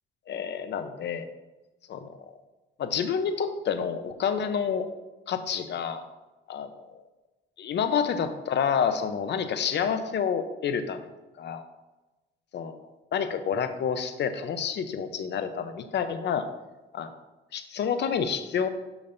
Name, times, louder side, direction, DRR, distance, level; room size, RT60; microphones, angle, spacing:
voice 1, 0.3-1.3 1.9-2.1 2.8-4.9 5.3-6.0 6.5-7.0 7.6-11.1 11.4-11.6 12.5-12.7 13.1-16.4 16.9-17.1 17.5-18.7, left 7 dB, 60° left, 9 dB, 0.8 m, -28 dB
8.9 x 6.1 x 2.6 m, 1.1 s
cardioid pair, 90°, 20 cm